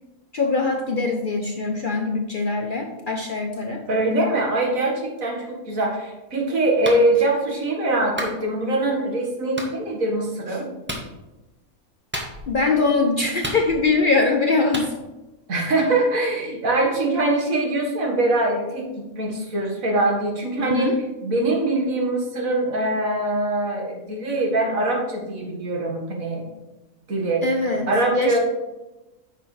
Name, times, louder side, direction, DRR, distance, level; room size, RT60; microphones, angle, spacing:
voice 1, 0.3-3.8 12.5-15.0 20.6-21.0 27.4-28.4, left 3 dB, 50° left, 2 dB, 0.6 m, -22 dB
voice 2, 3.9-10.7 15.5-21.0 21.2-26.4 27.1-27.4 27.9-28.4, right 2 dB, 65° right, 0 dB, 2.0 m, -23 dB
Clapping, 6.8-7.0 8.2-8.4 9.6-9.7 10.9-11.1 12.1-12.6 13.4-14.0 14.7-14.9, equal, 10° right, 1.0 m, -30 dB
9.6 x 6.5 x 3.3 m, 1.1 s
omnidirectional pair, 1.5 m